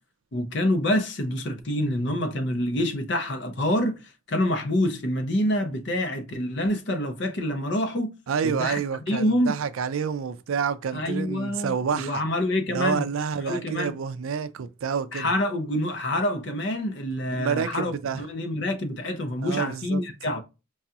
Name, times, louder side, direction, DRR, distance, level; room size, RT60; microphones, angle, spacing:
voice 1, 0.3-8.1 8.4-8.8 9.1-9.5 10.9-13.0 13.5-14.0 15.1-20.4, left 1 dB, 55° left, 0.7 m, -26 dB
voice 2, 8.3-12.2 12.7-15.3 17.4-18.2 19.4-20.0, right 6 dB, 80° right, 0.4 m, -28 dB
4.6 x 2.4 x 2.8 m
head